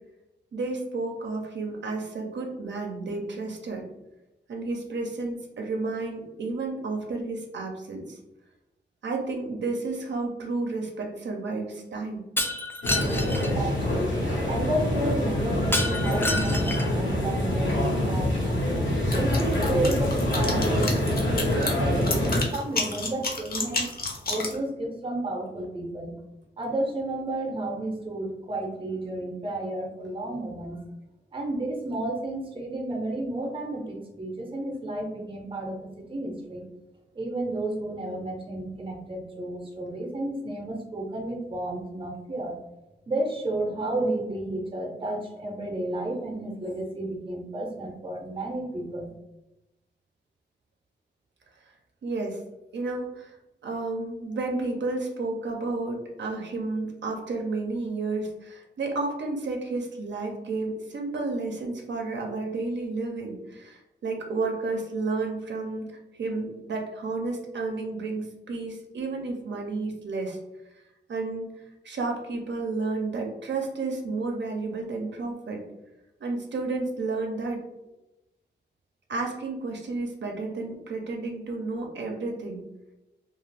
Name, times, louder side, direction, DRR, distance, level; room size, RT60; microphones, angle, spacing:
voice 1, 0.5-3.9 4.5-8.2 9.0-12.2 52.0-52.4 52.7-53.3 53.6-65.9 66.2-70.4 71.1-71.5 71.8-75.6 76.2-77.6 79.1-82.6, right 3 dB, 75° right, 1 dB, 0.5 m, -31 dB
Shatter, 12.4-13.5 15.7-17.0, left 2 dB, 10° left, 0.3 m, -28 dB
sound 1, 12.8-22.4, left 1 dB, 90° left, 1.0 m, -25 dB
voice 2, 13.5-14.2 14.5-23.8 24.3-26.1 26.6-30.8 31.3-36.6 37.1-42.6 43.1-49.1, right 1 dB, 30° right, 1 dB, 0.6 m, -32 dB
sound 2, 19.1-24.6, left 3 dB, 55° left, 0.6 m, -31 dB
2.4 x 2.4 x 3.2 m, 0.96 s
wide cardioid pair, 115°, 19 cm